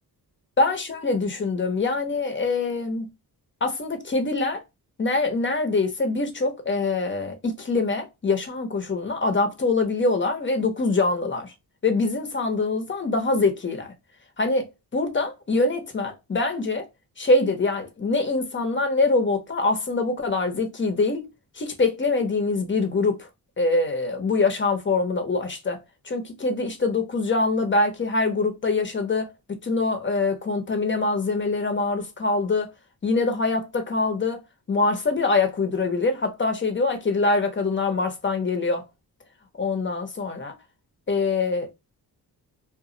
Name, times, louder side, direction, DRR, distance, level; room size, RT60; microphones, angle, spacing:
voice 1, 0.6-3.1 3.6-4.6 5.0-11.5 11.8-13.9 14.4-14.7 14.9-16.8 17.2-21.2 21.6-23.2 23.6-25.8 26.1-29.3 29.6-32.7 33.0-34.4 34.7-38.8 39.6-40.5 41.1-41.7, left 3 dB, 30° left, 0.7 m, -24 dB
2.2 x 2.1 x 3.7 m
cardioid pair, 100°, 38 cm